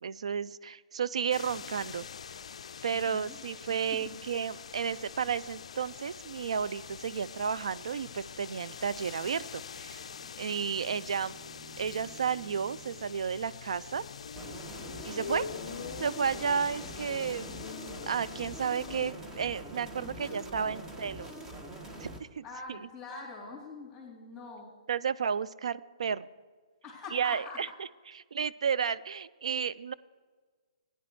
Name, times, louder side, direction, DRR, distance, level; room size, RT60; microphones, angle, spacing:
voice 1, 0.0-2.1 2.8-10.0 10.4-11.4 11.8-14.0 15.0-15.5 16.0-17.5 17.8-21.4 22.0-22.4 22.7-22.8 24.9-26.3 27.1-27.7 28.3-29.9, right 7 dB, 65° right, 15 dB, 0.4 m, -32 dB
sound 1, 1.3-19.1, left 7 dB, 65° left, 0.3 m, -44 dB
voice 2, 2.9-3.4 3.9-4.2 20.0-20.8 22.4-24.7 26.8-27.6, left 3 dB, 10° left, -8 dB, 3.4 m, -44 dB
Bowed string instrument, 9.4-13.2, right 2 dB, 45° right, 3.7 m, -54 dB
sound 2, 14.4-22.2, right 1 dB, 15° right, 1.2 m, -44 dB
17.0 x 10.0 x 3.1 m, 1.5 s
figure-of-eight pair, 130°, 4 cm